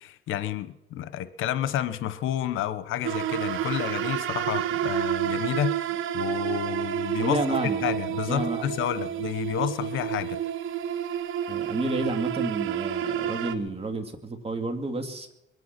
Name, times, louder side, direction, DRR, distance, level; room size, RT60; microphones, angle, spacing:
voice 1, 0.0-10.4, left 11 dB, 85° left, 13 dB, 0.9 m, -30 dB
sound 1, 3.0-13.5, right 10 dB, 85° right, 0.9 m, -29 dB
voice 2, 7.2-7.8 8.3-8.7 9.0-9.1 11.5-15.3, right 2 dB, 30° right, 5 dB, 2.2 m, -30 dB
22.5 x 9.4 x 5.9 m, 0.89 s
cardioid pair, 90°, 20 cm